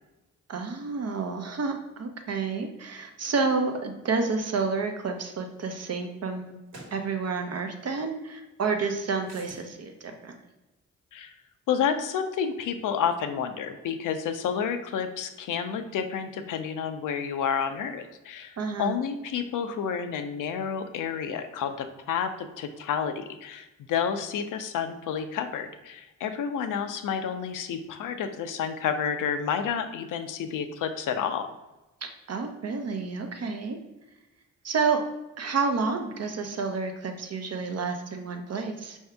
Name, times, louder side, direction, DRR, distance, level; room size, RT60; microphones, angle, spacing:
voice 1, 0.5-6.6 6.9-10.4 18.6-19.0 32.3-33.8 34.6-35.0 35.4-39.0, right 4 dB, 50° right, 4 dB, 0.7 m, -29 dB
sound 1, 6.7-7.0 9.2-9.7, right 2 dB, 70° right, 1.3 m, -46 dB
voice 2, 11.7-31.5, left 7 dB, 80° left, 8 dB, 0.5 m, -30 dB
4.7 x 2.7 x 3.4 m, 1.0 s
cardioid pair, 65°, 31 cm